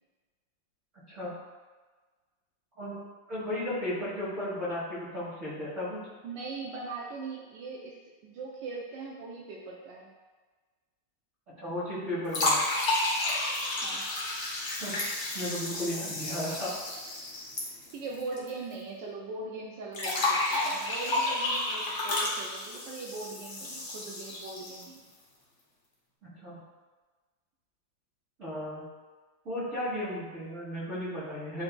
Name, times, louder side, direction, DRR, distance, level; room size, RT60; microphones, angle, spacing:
voice 1, 2.8-6.1 11.5-12.6 14.8-15.0 15.3-16.8 26.2-26.6 28.4-28.9 29.4-31.6, left 1 dB, 40° right, -12 dB, 1.4 m, -35 dB
voice 2, 6.2-8.0 8.2-10.1 13.8-14.0 17.9-25.0, right 3 dB, 75° right, -2 dB, 1.1 m, -40 dB
sound 1, 12.3-18.5 18.7-18.8 19.9-25.0, left 2 dB, 50° left, 0.9 m, -31 dB
7.9 x 2.7 x 2.2 m, 1.3 s
omnidirectional pair, 2.2 m